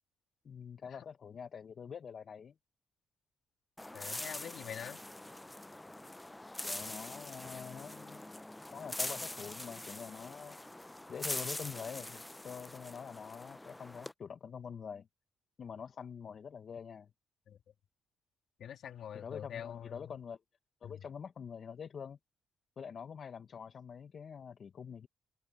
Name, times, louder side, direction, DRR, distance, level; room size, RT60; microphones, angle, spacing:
voice 1, 0.4-2.5 6.6-8.2 8.7-10.6 11.1-15.1 15.6-17.1 19.1-20.4 20.8-22.2 22.8-25.1, left 7 dB, 50° left, 1.0 m, -45 dB
sound 1, 3.8-14.1, left 1 dB, 10° left, 0.4 m, -43 dB
voice 2, 3.9-5.0 17.5-17.6 18.6-20.2 20.8-21.0, left 9 dB, 65° left, 2.9 m, -45 dB
open air
cardioid pair, 90°, 0 cm